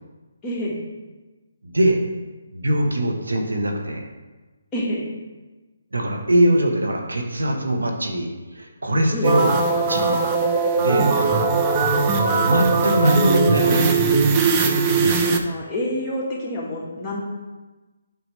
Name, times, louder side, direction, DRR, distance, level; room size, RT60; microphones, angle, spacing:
voice 1, 0.4-0.8 4.7-5.1 9.1-9.3 10.9-11.1 15.4-17.2, left 1 dB, 15° left, -6 dB, 1.6 m, -27 dB
voice 2, 1.6-2.0 2.5-4.0 5.9-8.3 8.5-10.2 10.8-11.4 12.2-13.9 14.9-15.4, right 1 dB, 90° right, 3 dB, 1.2 m, -22 dB
sound 1, 9.2-15.4, right 4 dB, 20° right, 0.5 m, -20 dB
8.4 x 4.8 x 3.3 m, 1.2 s
hypercardioid pair, 155°, 0 cm